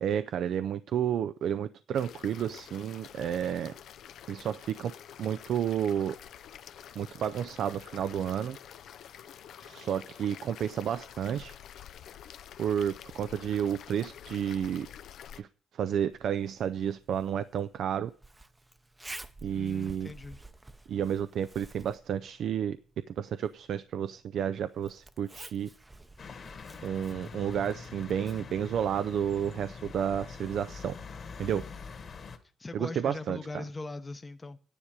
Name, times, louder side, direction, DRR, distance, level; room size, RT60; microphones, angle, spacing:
voice 1, 0.0-3.7 4.3-4.9 5.2-6.1 7.0-8.6 9.6-11.6 12.6-14.9 15.3-15.5 15.7-18.1 19.4-20.1 20.9-22.8 23.1-25.7 26.8-30.9 31.4-31.6 32.7-33.6, right 9 dB, 70° right, 0.4 m, -31 dB
sound 1, 1.9-15.4, left 9 dB, 75° left, 0.5 m, -48 dB
Zipper (clothing), 16.1-29.7, right 2 dB, 15° right, 0.7 m, -52 dB
voice 2, 19.5-20.4 32.6-34.6, left 3 dB, 25° left, 0.8 m, -40 dB
sound 2, 26.2-32.4, left 5 dB, 50° left, 1.8 m, -44 dB
10.5 x 10.0 x 4.9 m
cardioid pair, 90°, 0 cm